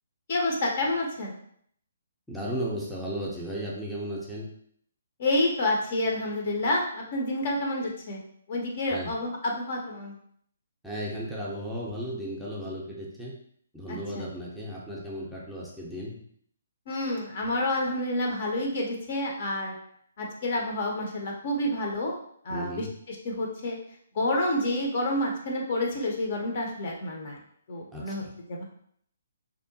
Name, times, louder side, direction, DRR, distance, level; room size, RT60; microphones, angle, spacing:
voice 1, 0.3-1.3 5.2-8.2 8.5-10.1 13.9-14.3 16.9-19.7 20.2-22.1 22.4-23.8 24.1-27.4 27.7-28.6, left 1 dB, 45° left, 0 dB, 0.6 m, -29 dB
voice 2, 2.3-4.5 8.9-9.1 10.8-13.3 13.7-16.2 22.5-22.9 27.9-28.3, equal, ahead, -6 dB, 0.5 m, -35 dB
2.7 x 2.1 x 2.6 m, 0.64 s
figure-of-eight pair, 135°, 0 cm